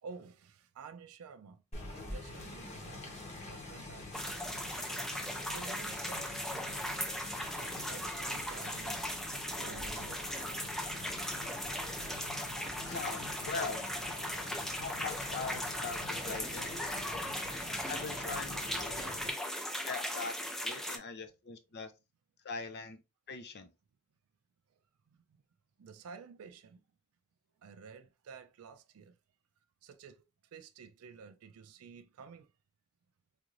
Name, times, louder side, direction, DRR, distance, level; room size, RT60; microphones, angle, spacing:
voice 1, 0.0-1.6 2.0-3.1 3.5-4.8 5.4-10.5 19.5-19.6 25.1-25.4 25.8-26.8 27.6-29.2 29.8-30.2 30.5-32.5, right 5 dB, 85° right, 0.4 m, -52 dB
sound 1, 1.7-19.3, left 2 dB, 30° left, 1.1 m, -45 dB
sound 2, 4.1-21.0, equal, ahead, 0.4 m, -38 dB
voice 2, 12.8-13.9 14.8-16.8 17.9-19.2 19.8-21.9 22.4-23.0 23.3-23.7, left 4 dB, 50° left, 0.6 m, -41 dB
3.4 x 2.5 x 3.1 m
head